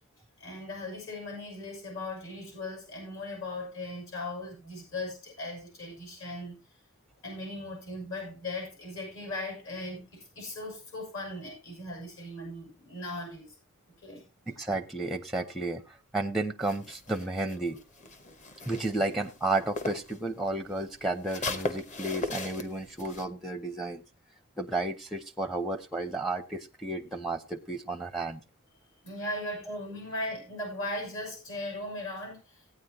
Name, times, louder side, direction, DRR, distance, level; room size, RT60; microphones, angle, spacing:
voice 1, 0.4-6.6 7.2-13.5 14.0-14.2 18.2-18.3 29.0-32.7, left 2 dB, 60° left, 6.4 m, -38 dB
voice 2, 14.5-17.8 18.7-24.0 24.6-28.4 29.7-29.8, right 2 dB, ahead, 0.6 m, -32 dB
sound 1, 16.6-20.2 20.5-23.2, left 3 dB, 35° left, 1.0 m, -38 dB
16.5 x 9.4 x 2.9 m
head